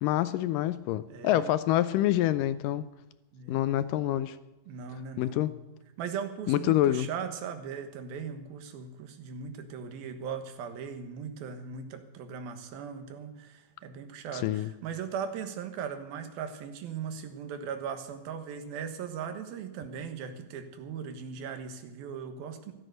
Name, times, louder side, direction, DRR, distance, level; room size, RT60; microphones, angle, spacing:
voice 1, 0.0-2.9 3.5-4.4 5.2-5.6 6.5-7.1 14.3-14.7, left 13 dB, 80° left, 14 dB, 2.1 m, -26 dB
voice 2, 1.1-1.5 3.3-3.7 4.7-5.4 6.0-22.7, right 7 dB, 90° right, 7 dB, 3.3 m, -38 dB
14.0 x 13.0 x 6.5 m, 1.0 s
omnidirectional pair, 4.1 m